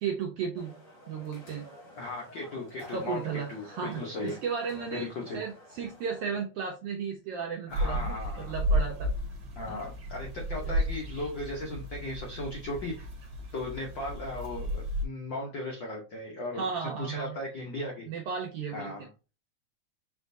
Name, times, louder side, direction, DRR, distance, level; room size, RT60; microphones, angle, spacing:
voice 1, 0.0-0.7 1.1-1.7 2.9-5.1 5.3-9.1 9.7-9.8 10.6-10.7 16.5-17.4 18.1-18.9, right 6 dB, 80° right, 1 dB, 1.4 m, -34 dB
sound 1, 0.5-6.4, left 1 dB, 45° left, 1.2 m, -51 dB
voice 2, 1.9-3.2 3.5-4.4 4.9-5.4 7.7-8.5 9.6-13.1 13.5-18.1 18.7-19.1, left 2 dB, 85° left, -1 dB, 1.0 m, -37 dB
sound 2, 7.7-15.0, equal, 50° right, 1.2 m, -33 dB
5.1 x 3.5 x 2.6 m, 0.32 s
omnidirectional pair, 3.4 m